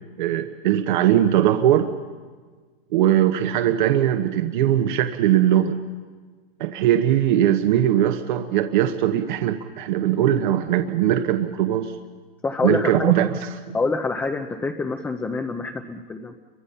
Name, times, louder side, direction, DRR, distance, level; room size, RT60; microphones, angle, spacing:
voice 1, 0.2-1.9 2.9-5.8 6.6-11.9 12.6-13.8, right 11 dB, 55° right, 7 dB, 1.2 m, -20 dB
voice 2, 12.4-13.1 13.7-16.3, left 3 dB, 5° left, 4 dB, 0.7 m, -26 dB
29.5 x 24.0 x 5.7 m, 1.4 s
hypercardioid pair, 145°, 30 cm